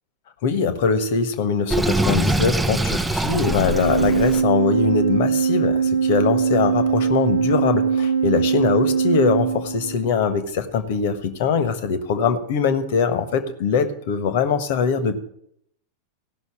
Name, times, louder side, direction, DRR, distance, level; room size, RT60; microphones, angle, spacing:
voice 1, 0.4-15.1, left 5 dB, 50° left, 10 dB, 1.4 m, -22 dB
Sink (filling or washing), 1.7-4.4, right 2 dB, 5° right, 0.6 m, -23 dB
Organ, 3.7-10.3, right 6 dB, 80° right, 0.9 m, -21 dB
16.0 x 6.2 x 7.4 m, 0.70 s
figure-of-eight pair, 90°, 0 cm